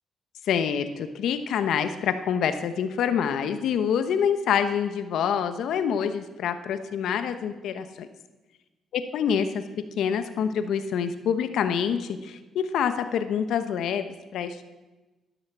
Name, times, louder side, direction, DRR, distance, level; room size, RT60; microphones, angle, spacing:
voice 1, 0.4-8.1 8.9-9.6 10.0-14.6, left 7 dB, 75° left, 9 dB, 0.9 m, -26 dB
11.5 x 11.0 x 7.3 m, 1.1 s
cardioid pair, 90°, 0 cm